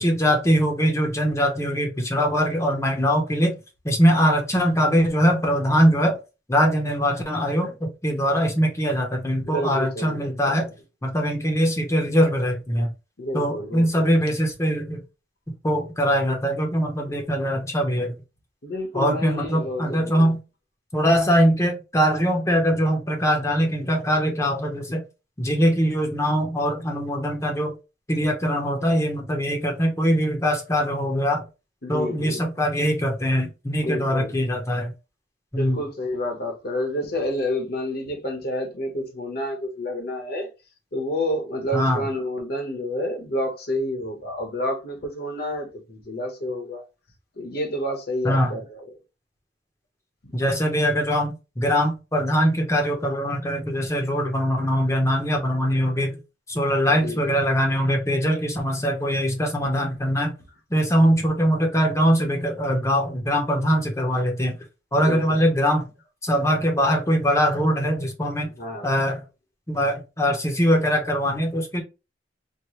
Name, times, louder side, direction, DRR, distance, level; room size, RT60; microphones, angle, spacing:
voice 1, 0.0-3.5 3.8-6.2 6.5-10.7 11.0-12.9 13.3-15.0 15.6-18.2 18.9-20.4 20.9-25.0 25.4-27.7 28.1-31.4 31.9-34.9 35.5-35.8 41.7-42.0 48.2-48.5 50.3-56.2 56.5-60.3 60.7-64.6 64.9-65.9 66.2-68.5 68.8-69.2 69.7-71.8, equal, 15° left, 0.8 m, -22 dB
voice 2, 9.4-10.7 13.2-14.1 18.6-20.3 31.8-32.4 33.8-34.4 35.6-40.5 40.9-46.8 47.4-48.9 50.2-50.4 57.0-57.4 65.0-65.4 68.6-69.0, left 1 dB, 55° left, 1.1 m, -29 dB
4.5 x 2.1 x 3.1 m
head